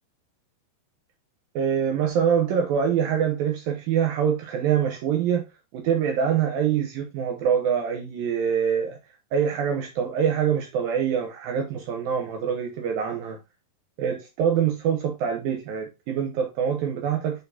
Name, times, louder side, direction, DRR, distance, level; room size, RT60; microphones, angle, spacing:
voice 1, 1.6-5.4 5.7-9.0 9.3-13.4 14.0-17.4, right 8 dB, 75° right, 2.4 m, -25 dB
7.9 x 4.3 x 2.7 m
omnidirectional pair, 4.7 m